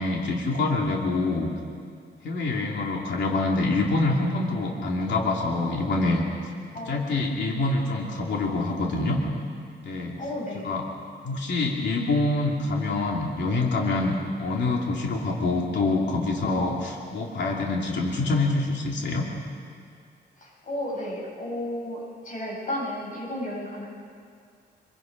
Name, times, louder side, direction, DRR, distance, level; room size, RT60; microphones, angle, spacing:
voice 1, 0.0-1.5 2.2-6.5 6.9-9.2 9.8-10.2 10.6-10.8 11.2-19.3, left 2 dB, 75° left, -1 dB, 2.9 m, -26 dB
voice 2, 6.7-7.1 10.2-10.8 20.4-23.9, left 1 dB, 45° left, -4 dB, 7.7 m, -33 dB
25.0 x 24.5 x 5.3 m, 2.2 s
cardioid pair, 135°, 18 cm